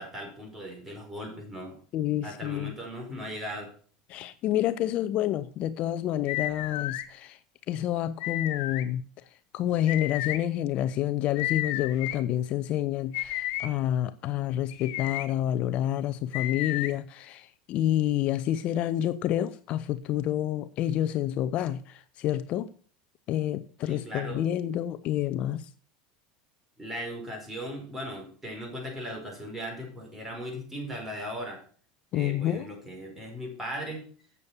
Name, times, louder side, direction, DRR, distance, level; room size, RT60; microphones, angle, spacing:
voice 1, 0.0-1.8 2.2-3.7 23.9-24.5 26.8-31.6 32.1-34.0, equal, 15° right, 4.9 m, -38 dB
voice 2, 1.9-2.7 4.1-7.4 7.7-9.1 9.5-22.7 23.3-25.7 32.1-32.7, left 12 dB, 50° left, 0.6 m, -28 dB
sound 1, 6.3-7.0 8.2-8.8 9.9-10.4 11.3-12.2 13.1-13.7 14.7-15.2 16.3-16.9, left 14 dB, 65° left, 1.0 m, -32 dB
8.3 x 6.8 x 7.1 m
supercardioid pair, 105°, 3 cm